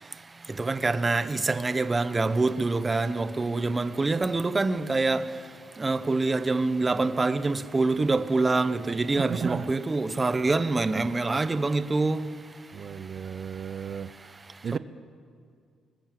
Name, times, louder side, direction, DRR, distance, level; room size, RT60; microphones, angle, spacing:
voice 1, 0.6-5.3 5.8-12.3 14.7-14.8, right 3 dB, 25° right, 1.0 m, -25 dB
voice 2, 9.2-9.7 12.7-14.3 14.6-14.8, right 7 dB, 55° right, 0.7 m, -34 dB
24.5 x 20.5 x 7.7 m
cardioid pair, 90°, 0 cm